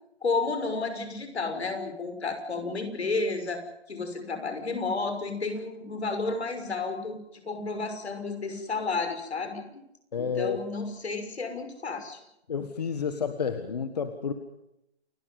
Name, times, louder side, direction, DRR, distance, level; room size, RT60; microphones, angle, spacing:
voice 1, 0.2-9.8 10.2-12.2, left 3 dB, 80° left, 7 dB, 6.1 m, -32 dB
voice 2, 10.1-10.6 12.5-14.3, left 6 dB, 40° left, 9 dB, 1.6 m, -30 dB
29.0 x 13.5 x 9.5 m, 0.83 s
hypercardioid pair, 175°, 32 cm